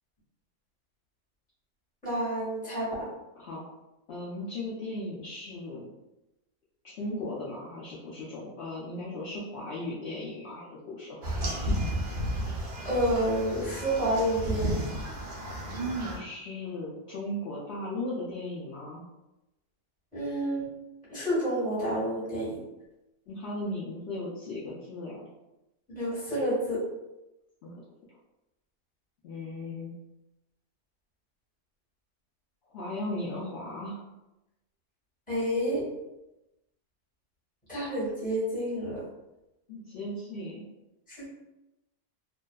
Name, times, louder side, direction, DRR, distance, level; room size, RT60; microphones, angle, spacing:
voice 1, 2.0-3.1 12.8-14.9 20.1-20.7 21.1-22.6 25.9-26.8 35.3-35.9 37.7-39.0 41.1-41.3, equal, 5° left, -9 dB, 1.0 m, -29 dB
voice 2, 4.1-5.9 6.8-11.7 16.0-19.0 23.3-25.2 27.6-27.8 29.2-29.9 32.7-34.0 39.7-40.6, left 1 dB, 75° left, -7 dB, 0.6 m, -37 dB
sound 1, 11.2-16.2, right 1 dB, 85° right, 0.4 m, -32 dB
2.6 x 2.2 x 2.2 m, 0.96 s
omnidirectional pair, 1.6 m